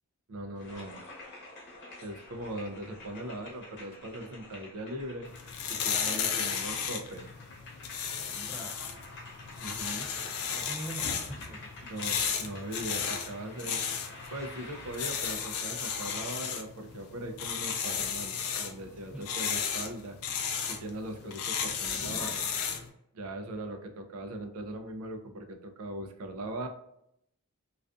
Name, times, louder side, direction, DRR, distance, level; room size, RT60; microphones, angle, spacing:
voice 1, 0.3-1.0 2.0-5.3 5.7-7.3 9.6-10.1 11.8-13.8 14.3-20.2 20.7-22.5 23.1-26.7, right 1 dB, 75° right, 6 dB, 0.4 m, -40 dB
sound 1, 0.6-15.6, left 2 dB, 55° left, 0.8 m, -49 dB
sound 2, 5.3-22.9, left 6 dB, 80° left, 0.4 m, -34 dB
voice 2, 8.2-8.8 10.5-11.8 19.1-19.3 23.4-23.6, right 1 dB, 5° right, 0 dB, 0.3 m, -43 dB
sound 3, 12.1-15.2 15.5-15.6 16.4-16.6 17.4-17.5 17.8-22.8, left 1 dB, 10° left, 0.8 m, -54 dB
2.4 x 2.3 x 2.3 m, 0.76 s
head